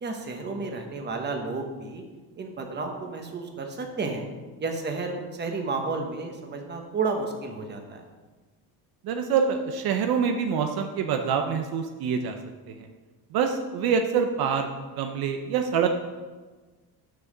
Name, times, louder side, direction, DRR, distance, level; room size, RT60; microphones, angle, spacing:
voice 1, 0.0-2.0 2.4-4.2 4.6-8.0, right 3 dB, 25° right, 4 dB, 1.2 m, -32 dB
voice 2, 9.0-12.4 12.7-12.9 13.3-15.9, right 6 dB, 65° right, 5 dB, 0.8 m, -26 dB
6.9 x 5.8 x 6.6 m, 1.3 s
cardioid pair, 140°, 40 cm